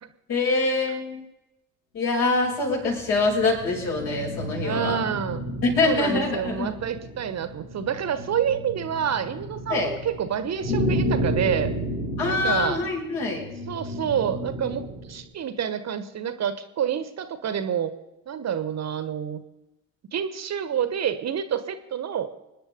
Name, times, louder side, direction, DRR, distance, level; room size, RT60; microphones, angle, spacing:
voice 1, 0.3-1.2 1.9-5.0 5.6-6.7 9.7-9.9 12.2-13.4, left 3 dB, 60° left, -1 dB, 6.4 m, -24 dB
sound 1, 2.6-15.2, equal, 85° left, 3.8 m, -32 dB
voice 2, 4.6-5.4 5.8-11.7 12.3-12.8 13.7-14.8 15.1-17.9 18.3-19.4 20.1-22.3, right 8 dB, 40° right, 12 dB, 1.3 m, -28 dB
25.5 x 10.0 x 5.2 m, 0.95 s
figure-of-eight pair, 55°, 41 cm